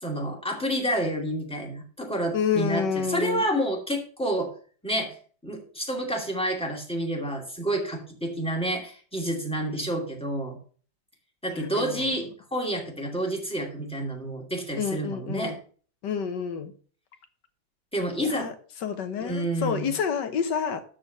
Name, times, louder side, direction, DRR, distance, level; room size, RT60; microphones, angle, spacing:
voice 1, 0.0-4.5 4.8-5.2 5.4-10.6 11.4-15.5 17.9-18.5 19.2-19.9, right 1 dB, 5° left, 0 dB, 2.5 m, -29 dB
voice 2, 2.3-3.4 11.5-12.1 14.7-15.6 16.0-16.7 18.2-18.5 18.8-20.8, left 7 dB, 85° left, 9 dB, 1.8 m, -29 dB
13.0 x 4.4 x 6.6 m, 0.43 s
omnidirectional pair, 1.8 m